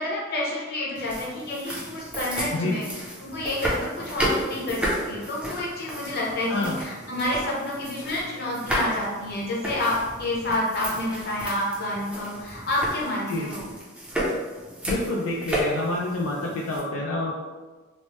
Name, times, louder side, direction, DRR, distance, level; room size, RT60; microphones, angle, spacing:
voice 1, 0.0-2.8 3.2-13.6, left 1 dB, 50° left, -4 dB, 0.8 m, -29 dB
sound 1, 1.0-16.8, equal, 5° right, 0.5 m, -33 dB
voice 2, 14.9-17.3, left 2 dB, 80° left, -2 dB, 0.4 m, -27 dB
3.1 x 2.1 x 2.9 m, 1.3 s
head